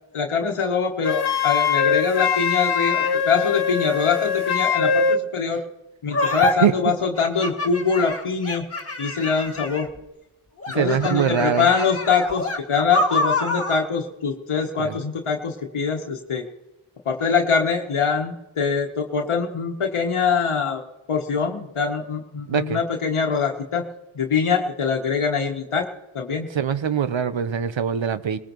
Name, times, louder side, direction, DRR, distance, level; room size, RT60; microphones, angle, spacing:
voice 1, 0.1-5.6 6.0-8.7 9.0-9.9 10.7-16.4 17.0-20.8 21.1-23.8 24.1-25.9 26.1-26.5, left 5 dB, 80° left, 1 dB, 1.2 m, -23 dB
Wind instrument woodwind instrument, 1.0-5.2, left 6 dB, 50° left, 0.8 m, -22 dB
sound 1, 6.1-6.5 7.2-10.0 10.6-13.8, left 1 dB, 30° left, 1.9 m, -26 dB
voice 2, 6.5-6.9 10.7-11.7 14.8-15.0 22.5-22.8 26.5-28.4, right 7 dB, 65° right, 13 dB, 0.9 m, -23 dB
20.0 x 17.5 x 3.1 m, 0.98 s
cardioid pair, 45°, 49 cm